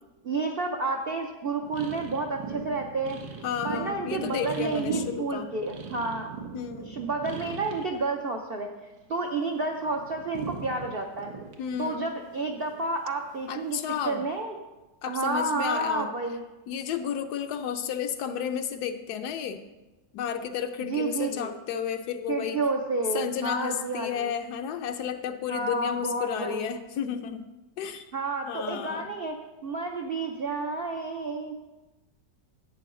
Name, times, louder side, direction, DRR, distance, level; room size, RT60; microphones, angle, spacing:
voice 1, 0.2-3.2 3.6-6.3 6.9-8.7 9.1-11.3 11.8-13.8 14.0-14.5 15.1-16.4 20.8-21.5 22.3-24.3 25.5-26.7 28.1-29.4 29.6-31.5, right 3 dB, 60° right, 1 dB, 0.6 m, -30 dB
sound 1, 1.6-8.0 8.3-9.3 9.6-13.2 13.9-14.2, right 4 dB, 90° right, 1.7 m, -40 dB
voice 2, 3.4-5.5 6.5-6.9 11.6-12.1 13.5-14.2 15.0-16.1 16.7-19.6 20.1-22.6 23.1-27.5 27.8-28.1 28.4-29.1, left 8 dB, 75° left, 8 dB, 1.1 m, -32 dB
11.0 x 8.3 x 3.7 m, 1.1 s
omnidirectional pair, 1.9 m